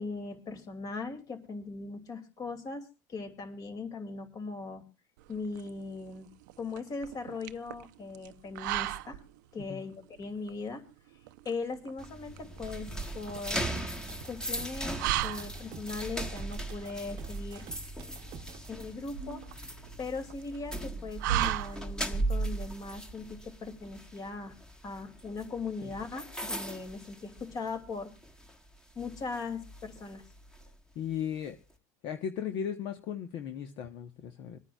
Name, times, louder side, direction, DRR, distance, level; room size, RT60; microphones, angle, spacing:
voice 1, 0.0-4.8 5.3-6.3 6.6-9.2 9.5-10.8 11.4-13.7 14.3-17.7 18.7-19.4 20.0-24.6 24.8-28.1 28.9-30.2, left 4 dB, 35° left, 7 dB, 2.5 m, -39 dB
sound 1, 5.2-22.2, right 14 dB, 85° right, 0.6 m, -38 dB
sound 2, 12.0-27.9 28.2-28.5 29.0-30.7, right 1 dB, 5° left, 1.5 m, -38 dB
sound 3, 13.6-18.7, right 9 dB, 45° right, 0.9 m, -48 dB
voice 2, 30.9-31.6 32.0-34.6, left 8 dB, 55° left, 7 dB, 1.1 m, -36 dB
26.5 x 9.7 x 2.4 m, 0.28 s
supercardioid pair, 125°, 10 cm